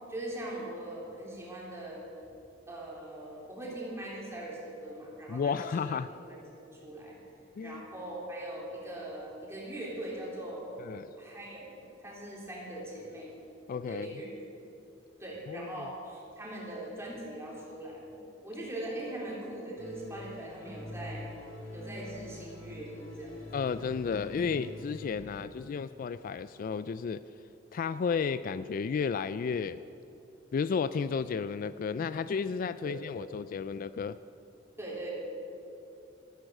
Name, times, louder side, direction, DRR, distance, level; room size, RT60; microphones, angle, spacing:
voice 1, 0.1-2.1 2.7-5.9 6.3-6.4 6.7-7.1 7.6-10.8 11.2-13.3 13.9-14.3 15.2-18.2 18.4-21.3 21.7-23.5 32.8-33.0 34.8-35.1, right 1 dB, 15° right, -5 dB, 3.9 m, -41 dB
voice 2, 5.3-6.1 7.6-7.8 10.8-11.1 13.7-14.1 15.5-15.9 23.5-27.2 27.7-29.8 30.5-34.2, left 5 dB, 45° left, 14 dB, 0.3 m, -33 dB
sound 1, 19.8-25.2, left 2 dB, 85° left, 3.4 m, -45 dB
14.0 x 13.5 x 6.4 m, 2.9 s
head